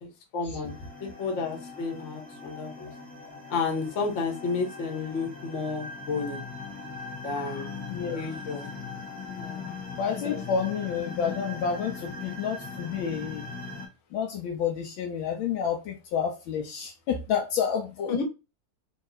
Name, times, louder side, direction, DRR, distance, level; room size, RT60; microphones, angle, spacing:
voice 1, 0.0-0.7 1.0-2.9 3.5-6.4 7.2-7.7 8.1-8.7 9.3-9.7 18.1-18.2, left 4 dB, 45° left, 1 dB, 1.1 m, -31 dB
sound 1, 0.6-13.9, left 4 dB, 10° left, 0.4 m, -40 dB
voice 2, 9.7-13.5 14.1-18.2, left 7 dB, 75° left, 3 dB, 1.3 m, -30 dB
3.5 x 2.6 x 3.9 m, 0.29 s
omnidirectional pair, 2.3 m